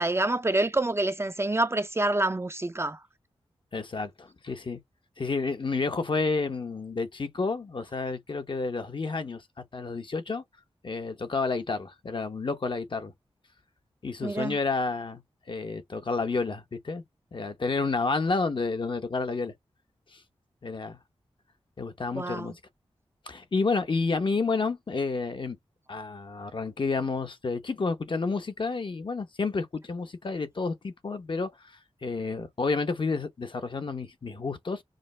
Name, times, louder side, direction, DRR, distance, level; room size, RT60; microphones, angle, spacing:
voice 1, 0.0-3.0 14.2-14.6 22.1-22.5, right 2 dB, 25° right, 0.5 m, -27 dB
voice 2, 3.7-4.8 5.2-9.4 9.7-10.4 10.8-13.1 14.0-15.2 15.5-17.0 17.3-19.5 20.1-20.2 20.6-21.0 21.8-22.5 23.3-25.6 25.9-31.5 32.0-34.8, left 4 dB, 50° left, 0.9 m, -30 dB
5.0 x 2.0 x 3.2 m
cardioid pair, 55°, 10 cm